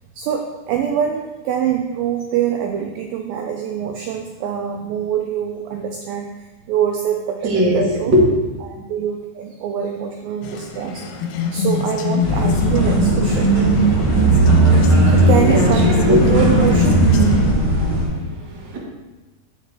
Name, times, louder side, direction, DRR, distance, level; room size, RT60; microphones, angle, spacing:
voice 1, 0.2-8.1 8.6-13.5 14.7-17.0, right 8 dB, 80° right, 2 dB, 2.1 m, -24 dB
voice 2, 7.4-8.2 15.4-16.3 17.5-18.8, left 1 dB, 50° right, -4 dB, 1.3 m, -20 dB
sound 1, 10.4-17.5, left 6 dB, 90° left, 2.6 m, -25 dB
sound 2, 12.2-18.0, right 2 dB, 35° right, 2.2 m, -16 dB
7.5 x 6.6 x 3.3 m, 1.1 s
omnidirectional pair, 4.6 m